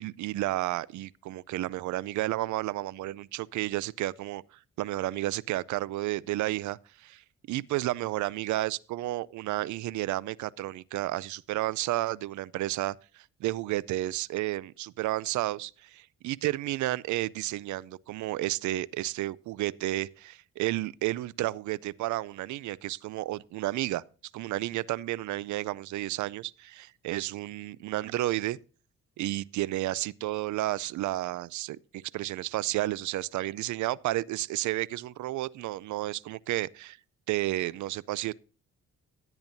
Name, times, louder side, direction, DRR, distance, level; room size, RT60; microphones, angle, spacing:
voice 1, 0.0-4.4 4.8-7.2 7.5-24.0 24.3-28.6 29.2-37.0 37.3-38.3, right 16 dB, 70° right, 0.5 m, -32 dB
16.5 x 8.8 x 2.7 m
cardioid pair, 90°, 30 cm